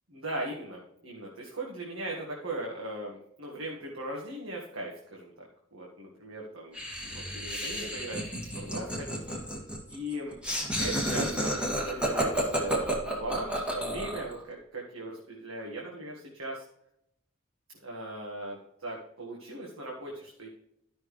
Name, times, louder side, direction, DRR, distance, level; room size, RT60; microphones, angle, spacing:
voice 1, 0.1-8.3 8.6-9.2 9.9-10.4 10.7-16.6 17.8-20.5, right 1 dB, 85° right, -2 dB, 1.7 m, -39 dB
Laughter, 6.7-14.3, right 1 dB, 5° right, 2.0 m, -31 dB
13.0 x 6.1 x 3.2 m, 0.77 s
head